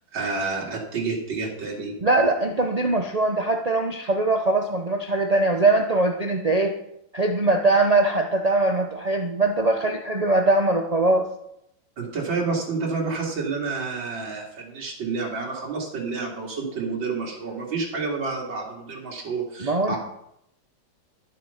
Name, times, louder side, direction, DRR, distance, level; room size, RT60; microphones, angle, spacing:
voice 1, 0.1-1.9 12.0-20.0, right 4 dB, 80° right, -3 dB, 3.2 m, -29 dB
voice 2, 2.0-6.8 7.1-11.3 19.6-20.0, right 2 dB, 60° right, 4 dB, 0.4 m, -21 dB
13.0 x 7.6 x 5.7 m, 0.78 s
omnidirectional pair, 2.1 m